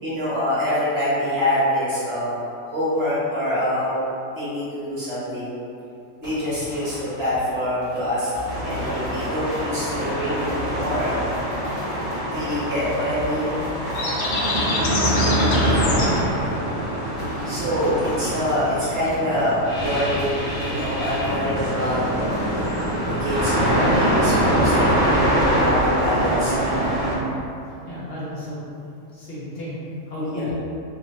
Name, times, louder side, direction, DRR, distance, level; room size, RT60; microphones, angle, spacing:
voice 1, 0.0-2.3 2.7-3.9 4.3-5.5 6.2-8.3 8.6-11.1 12.2-13.7 17.4-22.4 23.2-26.9 30.2-30.4, equal, 55° right, -10 dB, 1.2 m, -25 dB
sound 1, 6.2-22.0 22.3-23.7, left 1 dB, 40° left, 0.5 m, -37 dB
sound 2, 8.4-27.2, right 1 dB, 40° right, 0.8 m, -24 dB
sound 3, 12.7-19.1, left 2 dB, 80° left, 1.0 m, -30 dB
voice 2, 15.6-16.2 27.6-28.6 29.1-30.6, left 1 dB, 55° left, -8 dB, 0.8 m, -33 dB
2.7 x 2.5 x 3.1 m, 2.7 s
omnidirectional pair, 1.3 m